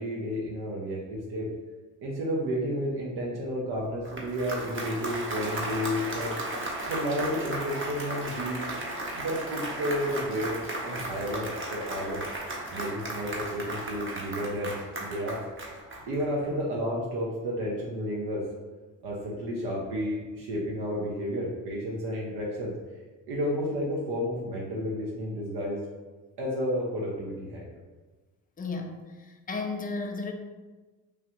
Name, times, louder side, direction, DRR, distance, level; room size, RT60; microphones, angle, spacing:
voice 1, 0.0-1.5 2.0-6.3 6.9-8.6 9.1-12.3 12.7-15.4 16.1-18.5 19.0-22.7 23.3-25.8 26.4-27.7, equal, 60° right, -5 dB, 0.8 m, -31 dB
Applause, 3.9-16.5, right 1 dB, 30° right, 0.9 m, -35 dB
voice 2, 28.6-29.0 29.5-30.3, left 3 dB, 20° left, 3 dB, 0.5 m, -33 dB
3.2 x 2.3 x 3.0 m, 1.3 s
hypercardioid pair, 55°, 43 cm